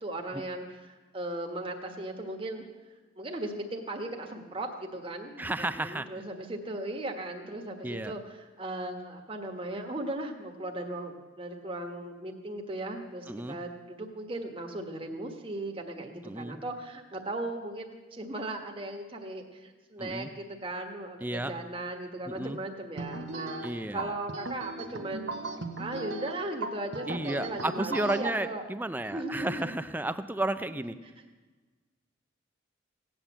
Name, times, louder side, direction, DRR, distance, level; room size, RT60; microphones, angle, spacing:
voice 1, 0.0-2.6 3.2-25.4 25.8-28.6 29.1-29.7 31.2-31.3, right 2 dB, 25° right, 3 dB, 1.4 m, -37 dB
voice 2, 5.4-6.2 7.8-8.1 13.3-13.6 16.2-16.6 20.0-20.3 21.2-21.5 22.3-22.6 23.6-24.1 27.1-31.0, right 1 dB, 10° right, 12 dB, 0.5 m, -32 dB
sound 1, 23.0-28.3, right 2 dB, 65° right, 1.1 m, -38 dB
17.0 x 9.0 x 7.3 m, 1.3 s
head